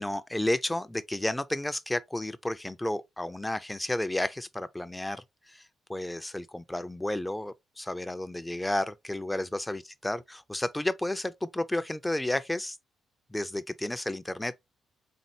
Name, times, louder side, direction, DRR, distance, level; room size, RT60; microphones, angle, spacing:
voice 1, 0.0-5.6 5.9-12.8 13.3-14.6, left 1 dB, 10° left, 0.3 m, -32 dB
4.2 x 3.7 x 2.6 m
cardioid pair, 90°, 0 cm